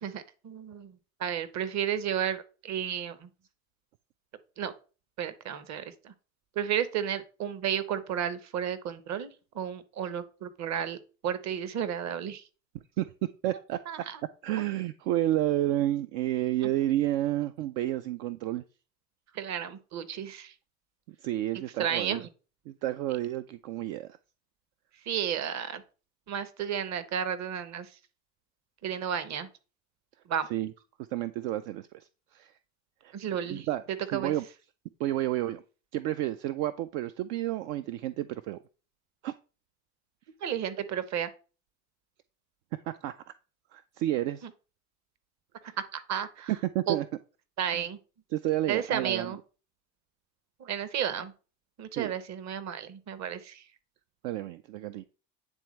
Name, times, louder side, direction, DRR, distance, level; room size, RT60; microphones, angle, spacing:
voice 1, 0.0-3.3 4.6-4.7 5.2-6.1 6.5-11.0 11.2-12.4 13.9-14.2 14.6-14.7 16.6-16.7 19.3-20.5 21.8-22.3 25.1-25.8 26.3-27.9 28.8-29.5 30.3-30.5 33.1-33.7 34.1-34.3 40.4-41.3 45.8-46.5 46.9-47.0 47.6-48.0 48.7-49.4 50.6-51.3 51.8-53.6, right 9 dB, 45° right, 13 dB, 0.9 m, -32 dB
voice 2, 13.0-14.1 14.4-18.6 21.1-22.2 22.7-24.1 30.5-30.7 31.1-32.6 33.0-33.1 33.5-33.8 34.1-34.4 35.0-35.6 35.9-38.6 39.2-39.3 42.7-43.1 43.7-44.5 46.5-47.1 47.7-47.8 48.3-49.3 51.9-52.1 54.2-55.0, right 14 dB, 65° right, 11 dB, 0.5 m, -30 dB
9.1 x 3.5 x 3.1 m, 0.35 s
hypercardioid pair, 75°, 40 cm